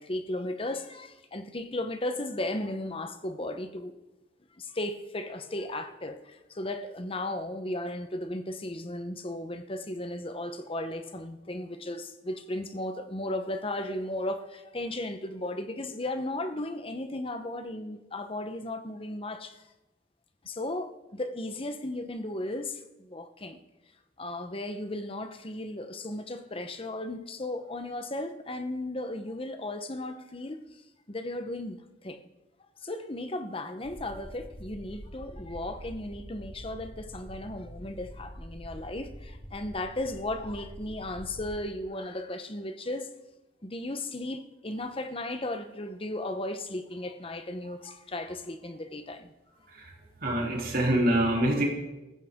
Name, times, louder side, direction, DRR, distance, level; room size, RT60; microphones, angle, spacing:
voice 1, 0.0-3.9 4.6-19.6 20.4-23.6 24.2-30.6 31.1-32.2 32.8-43.1 43.6-49.3, left 1 dB, 30° left, 1.0 m, -35 dB
sound 1, 33.8-41.6, equal, 65° left, 5.4 m, -45 dB
voice 2, 49.7-51.7, right 1 dB, 55° right, 3.4 m, -26 dB
18.0 x 15.0 x 3.7 m
head